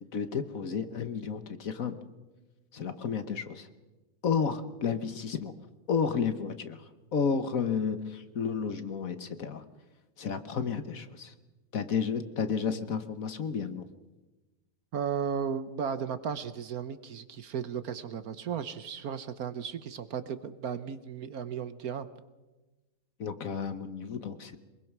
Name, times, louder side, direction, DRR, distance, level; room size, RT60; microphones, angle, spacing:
voice 1, 0.0-2.0 2.7-3.7 4.2-5.5 5.9-6.8 7.1-9.6 10.2-11.3 11.7-13.9 23.2-24.6, left 6 dB, 55° left, 10 dB, 1.4 m, -32 dB
voice 2, 14.9-22.1, right 7 dB, 60° right, 13 dB, 1.3 m, -35 dB
23.5 x 22.0 x 6.1 m, 1.2 s
omnidirectional pair, 1.9 m